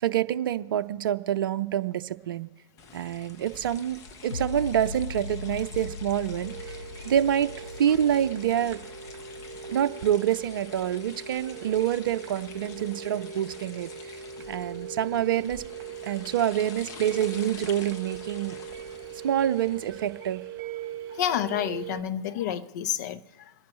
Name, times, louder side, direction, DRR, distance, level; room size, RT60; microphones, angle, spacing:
voice 1, 0.0-2.5 2.9-7.5 7.8-8.8 9.7-13.9 14.5-15.6 16.0-18.6 19.2-20.4, right 10 dB, 50° right, 0.6 m, -27 dB
sound 1, 2.8-20.5, left 4 dB, 20° left, 1.0 m, -47 dB
sound 2, 4.3-11.4 11.8-11.9, left 5 dB, 80° left, 0.6 m, -40 dB
sound 3, 6.4-22.0, right 7 dB, 30° right, 2.4 m, -41 dB
voice 2, 21.1-23.5, left 10 dB, 40° left, 0.7 m, -29 dB
26.0 x 10.5 x 3.2 m
figure-of-eight pair, 125°, 14 cm